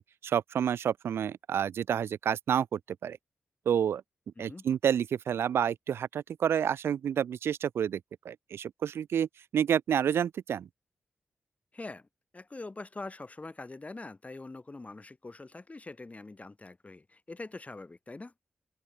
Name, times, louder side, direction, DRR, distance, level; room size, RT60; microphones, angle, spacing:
voice 1, 0.0-3.2 3.7-4.0 4.4-8.0 8.2-9.3 9.5-10.7, right 8 dB, 85° right, 0.9 m, -29 dB
voice 2, 11.7-12.1 12.3-18.3, left 3 dB, 35° left, 4.0 m, -44 dB
open air
cardioid pair, 45°, 4 cm